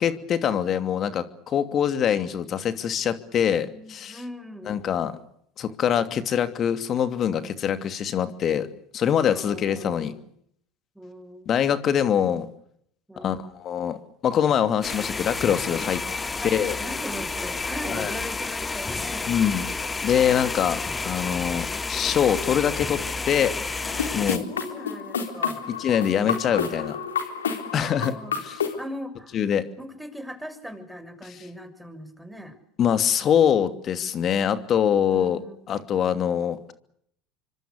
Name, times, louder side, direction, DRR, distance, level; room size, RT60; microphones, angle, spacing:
voice 1, 0.0-4.2 4.7-5.1 5.6-8.7 8.9-10.1 11.5-12.5 13.2-14.0 14.2-16.0 16.5-16.8 17.9-18.1 19.3-19.7 20.0-23.0 23.3-23.5 24.1-24.4 25.8-27.0 27.7-28.1 28.4-28.5 29.3-29.7 32.8-35.4 35.7-36.7, left 8 dB, 40° left, 11 dB, 2.7 m, -24 dB
voice 2, 3.4-4.8 9.3-10.2 10.9-11.6 13.1-13.5 16.4-19.3 24.3-25.7 27.7-28.3 28.8-29.4 29.8-32.6 33.2-33.3 35.1-35.7, equal, ahead, 7 dB, 6.7 m, -40 dB
sound 1, 14.8-24.4, left 4 dB, 20° left, 1.3 m, -30 dB
sound 2, 23.8-28.8, left 6 dB, 85° left, 3.9 m, -30 dB
27.5 x 25.0 x 6.8 m, 0.68 s
hypercardioid pair, 75°, 0 cm